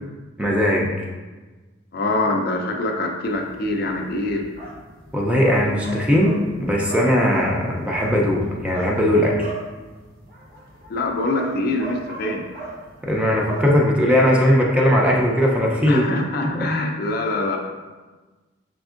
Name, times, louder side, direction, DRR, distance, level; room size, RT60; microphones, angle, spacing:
voice 1, 0.4-1.1 5.1-9.5 13.0-16.1 16.5-16.7, equal, 5° right, -2 dB, 0.5 m, -19 dB
voice 2, 1.9-4.5 10.9-12.5 15.9-17.6, left 2 dB, 50° left, 2 dB, 0.4 m, -24 dB
sound 1, 3.2-13.6, right 2 dB, 55° right, 0.9 m, -38 dB
5.1 x 3.5 x 2.4 m, 1.3 s
head